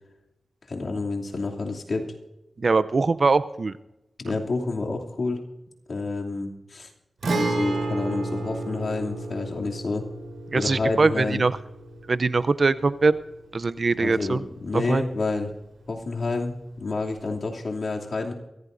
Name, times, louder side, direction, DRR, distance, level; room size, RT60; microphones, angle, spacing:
voice 1, 0.7-2.1 4.2-5.4 5.9-6.9 7.2-10.0 10.5-11.4 14.0-15.5 15.9-18.3, left 3 dB, 60° left, 0 dB, 2.8 m, -29 dB
voice 2, 2.6-3.7 10.5-11.6 12.1-13.2 13.5-14.4 14.7-15.0, right 3 dB, 50° right, 14 dB, 0.6 m, -22 dB
Guitar, 7.2-14.8 15.1-15.2 17.2-17.4, right 2 dB, 85° right, 4.0 m, -32 dB
23.5 x 16.0 x 2.6 m, 0.94 s
cardioid pair, 70°, 0 cm